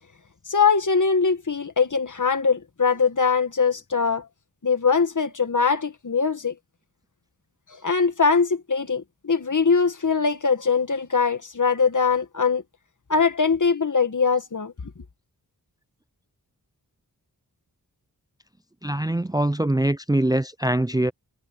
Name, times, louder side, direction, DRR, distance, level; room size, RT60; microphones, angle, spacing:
voice 1, 0.5-4.3 4.6-6.6 7.7-12.6 13.1-14.7, left 5 dB, 55° left, 2.0 m, -22 dB
voice 2, 18.8-21.1, right 1 dB, 10° right, 0.6 m, -23 dB
wide cardioid pair, 60°, 36 cm